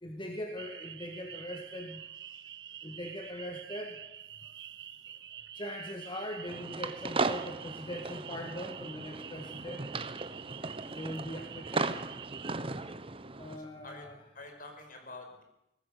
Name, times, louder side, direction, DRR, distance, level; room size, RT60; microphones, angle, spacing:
voice 1, 0.0-2.0 2.8-4.0 5.5-9.8 10.8-12.0 13.4-14.1, equal, 30° left, 3 dB, 2.0 m, -41 dB
sound 1, 0.6-12.5, right 10 dB, 75° right, 1.1 m, -47 dB
voice 2, 2.3-2.8 4.5-4.7 10.4-10.8 13.6-14.1 14.3-15.4, left 2 dB, 50° left, 4 dB, 5.5 m, -49 dB
sound 2, 6.5-13.6, right 3 dB, 30° right, 1.1 m, -37 dB
23.0 x 19.0 x 6.8 m, 0.88 s
head